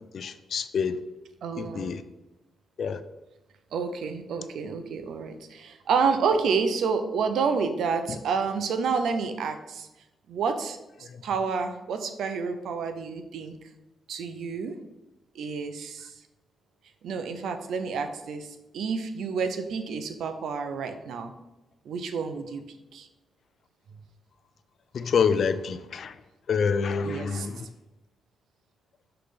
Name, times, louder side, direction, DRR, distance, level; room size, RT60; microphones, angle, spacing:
voice 1, 0.1-1.0 1.6-2.0 2.8-3.0 24.9-26.1 26.5-27.7, left 6 dB, 60° left, 12 dB, 0.4 m, -27 dB
voice 2, 1.4-2.0 3.7-9.9 10.3-13.6 14.1-14.8 15.3-16.1 17.0-21.3 21.9-22.6 22.9-23.1 27.0-27.5, right 5 dB, 80° right, 8 dB, 0.6 m, -29 dB
5.9 x 3.3 x 5.1 m, 1.0 s
cardioid pair, 95°, 0 cm